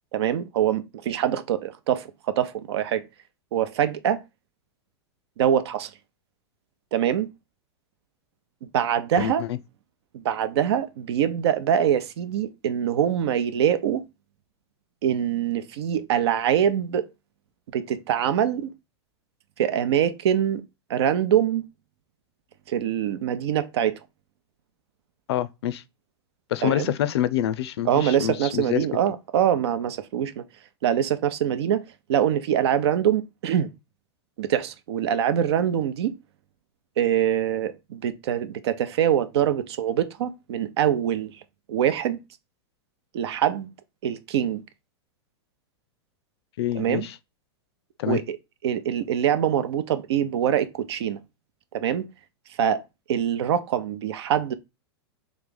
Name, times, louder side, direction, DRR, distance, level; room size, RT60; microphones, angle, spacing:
voice 1, 0.1-3.1 3.5-4.2 5.4-5.9 6.9-7.3 8.6-9.4 10.1-14.0 15.0-17.1 17.7-18.7 19.6-20.6 20.9-21.7 22.7-24.0 26.6-26.9 27.9-30.4 30.8-31.8 32.1-33.7 34.4-36.1 37.0-41.4 41.7-42.2 43.1-43.7 44.0-44.6 46.8-47.1 48.0-48.4 48.6-51.2 51.7-52.1 52.6-52.8 53.1-54.5, right 9 dB, 75° right, 0.7 m, -24 dB
voice 2, 9.2-9.6 25.3-25.8 26.5-28.9 46.6-47.2 48.0-48.2, left 12 dB, 75° left, 0.5 m, -26 dB
3.5 x 3.2 x 3.7 m
hypercardioid pair, 125°, 14 cm